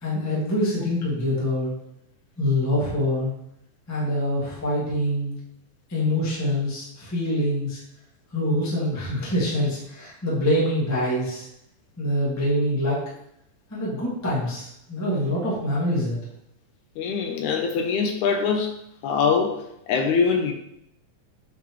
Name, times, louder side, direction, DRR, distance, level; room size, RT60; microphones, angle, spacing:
voice 1, 0.0-1.7 2.4-3.3 3.9-5.4 5.9-7.8 8.3-11.5 12.0-13.0 13.7-16.1, left 1 dB, 10° left, -6 dB, 0.9 m, -25 dB
voice 2, 17.0-18.8 19.0-20.5, left 5 dB, 80° left, 4 dB, 1.9 m, -23 dB
8.4 x 4.1 x 3.0 m, 0.76 s
omnidirectional pair, 3.7 m